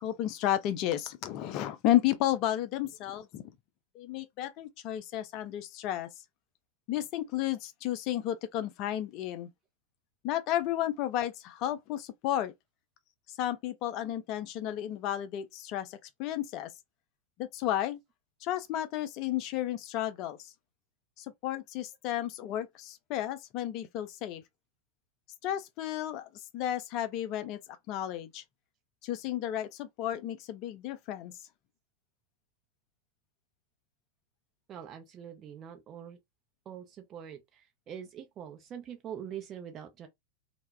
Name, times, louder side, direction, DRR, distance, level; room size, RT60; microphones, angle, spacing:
voice 1, 0.0-3.5 3.9-6.1 6.9-9.5 10.2-12.5 13.3-16.7 17.4-18.0 18.4-20.5 21.2-24.4 25.4-26.3 26.5-27.6 27.9-28.4 29.0-31.3, left 12 dB, 40° left, 0.3 m, -32 dB
voice 2, 34.7-36.2 36.7-40.1, right 9 dB, 30° right, 0.7 m, -44 dB
2.1 x 2.0 x 3.2 m
figure-of-eight pair, 90°, 0 cm